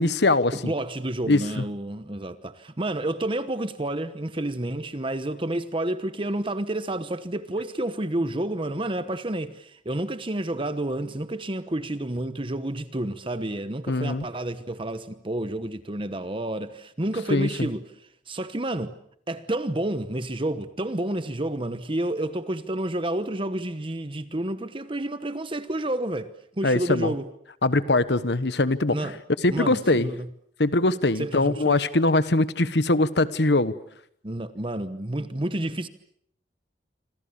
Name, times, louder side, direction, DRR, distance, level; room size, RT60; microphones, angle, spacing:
voice 1, 0.0-0.7 1.3-1.6 13.9-14.2 17.3-17.7 26.6-27.1 27.6-29.1 29.4-30.1 30.6-33.7, left 2 dB, 65° left, 1.3 m, -22 dB
voice 2, 0.5-17.8 18.3-19.0 19.3-26.3 26.6-27.3 28.9-29.2 29.5-30.3 31.2-31.8 34.2-35.9, right 1 dB, 30° right, 1.1 m, -30 dB
27.0 x 26.5 x 7.0 m
head